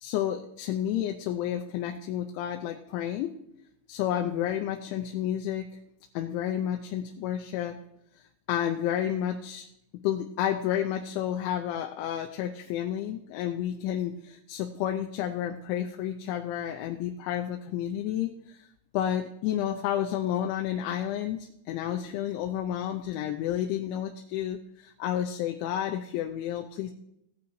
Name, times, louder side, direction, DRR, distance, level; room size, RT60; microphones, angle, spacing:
voice 1, 0.0-3.3 3.9-5.7 6.1-7.8 8.2-9.7 10.0-18.7 18.9-26.9, left 10 dB, 90° left, 3 dB, 3.1 m, -31 dB
17.0 x 9.7 x 3.1 m, 0.79 s
omnidirectional pair, 5.3 m